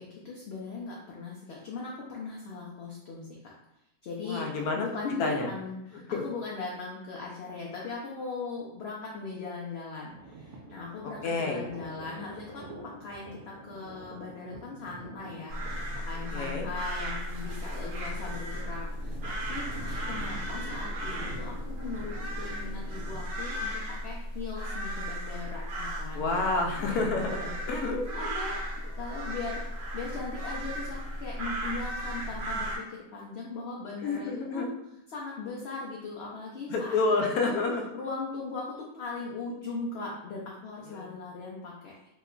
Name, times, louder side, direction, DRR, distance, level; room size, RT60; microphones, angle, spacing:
voice 1, 0.0-3.5 4.0-26.2 26.9-27.0 28.1-29.6 29.9-34.7 35.1-37.1 37.4-37.6 37.9-38.7 38.9-42.1, left 4 dB, 65° left, -3 dB, 0.7 m, -39 dB
voice 2, 4.2-4.9 5.2-5.5 6.1-6.2 11.2-11.6 16.3-16.7 26.1-28.4 34.0-34.7 36.7-37.9 40.9-41.1, left 3 dB, 85° left, 1 dB, 1.1 m, -29 dB
Thunder, 10.1-23.3, right 2 dB, 80° right, 1.1 m, -47 dB
sound 1, 15.5-32.8, equal, 55° right, 0.6 m, -35 dB
3.0 x 2.2 x 3.6 m, 0.85 s
omnidirectional pair, 1.5 m